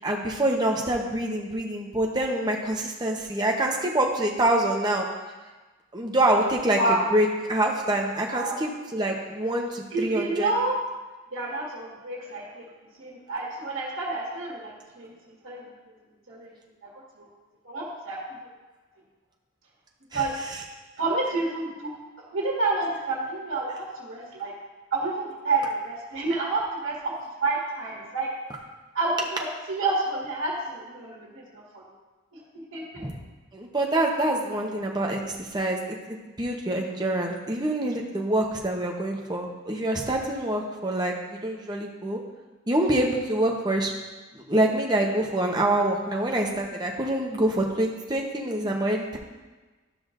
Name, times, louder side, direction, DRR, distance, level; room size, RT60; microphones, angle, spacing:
voice 1, 0.0-5.1 5.9-10.5 20.1-20.2 33.0-33.2 33.5-42.2 42.7-43.9 44.3-49.2, right 1 dB, 20° right, 0 dB, 0.9 m, -26 dB
voice 2, 6.7-7.0 8.3-8.6 9.9-10.7 11.3-12.7 13.0-15.7 16.3-16.5 16.8-17.3 17.6-18.5 20.1-20.3 21.0-21.9 22.3-24.5 24.9-27.1 27.4-28.3 28.9-31.8 32.7-33.0, right 3 dB, 75° right, -5 dB, 1.8 m, -29 dB
12.5 x 5.8 x 2.6 m, 1.2 s
head